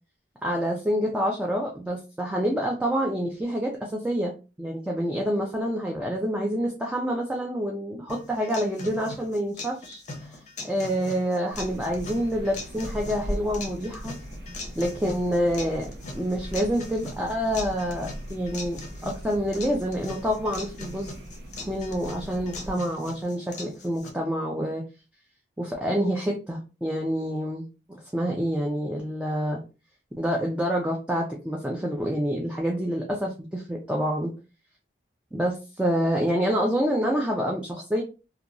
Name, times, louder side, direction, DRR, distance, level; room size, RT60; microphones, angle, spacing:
voice 1, 0.4-4.3 4.6-14.1 14.8-21.2 21.7-24.8 25.6-27.6 28.1-29.6 30.2-34.3 35.3-38.0, equal, 5° right, -1 dB, 0.4 m, -27 dB
sound 1, 8.1-24.1, left 3 dB, 40° left, 0.6 m, -41 dB
sound 2, 11.5-22.8, equal, 60° right, 0.6 m, -39 dB
2.9 x 2.2 x 2.5 m, 0.31 s
head